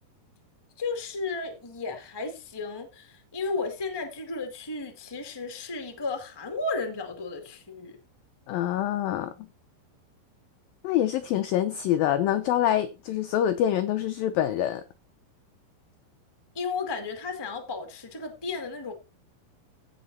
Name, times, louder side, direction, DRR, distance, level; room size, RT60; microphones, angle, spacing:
voice 1, 0.8-8.0 16.5-18.9, left 3 dB, 20° left, 0.7 m, -34 dB
voice 2, 8.5-9.5 10.8-14.8, left 11 dB, 90° left, 2.0 m, -25 dB
16.5 x 6.0 x 4.2 m
omnidirectional pair, 5.1 m